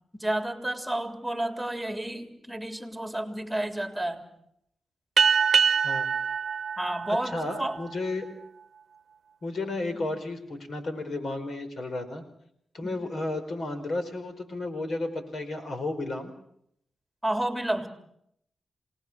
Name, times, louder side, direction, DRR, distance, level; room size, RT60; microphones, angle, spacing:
voice 1, 0.1-4.3 6.8-7.8 9.9-10.1 12.8-13.1 17.2-17.9, right 1 dB, 5° right, 6 dB, 3.7 m, -31 dB
sound 1, 5.2-8.1, right 6 dB, 65° right, 0.9 m, -25 dB
voice 2, 7.2-8.3 9.4-12.2 12.7-16.3, left 2 dB, 60° left, 8 dB, 4.8 m, -33 dB
28.0 x 19.5 x 6.1 m, 0.73 s
cardioid pair, 70°, 0 cm